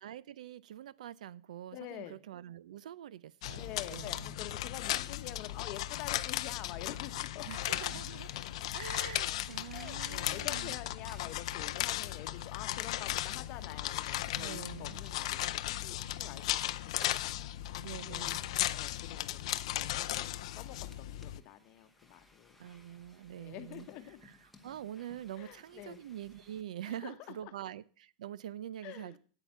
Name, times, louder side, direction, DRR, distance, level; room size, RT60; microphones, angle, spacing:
voice 1, 0.0-4.4 7.5-8.3 8.7-10.7 14.4-15.0 17.8-18.5 22.6-23.9 24.2-24.4 24.6-29.2, right 11 dB, 80° right, 20 dB, 0.6 m, -45 dB
voice 2, 1.7-2.2 3.5-7.5 9.7-18.3 18.7-19.5 19.8-22.6 23.3-24.2 25.4-26.0 26.8-27.5 28.8-29.2, left 13 dB, 30° left, 9 dB, 1.0 m, -47 dB
sound 1, 3.4-21.4, left 14 dB, 55° left, 0.5 m, -36 dB
sound 2, 6.9-26.6, left 2 dB, ahead, 0.8 m, -59 dB
9.0 x 8.8 x 6.9 m, 0.42 s
supercardioid pair, 175°, 4 cm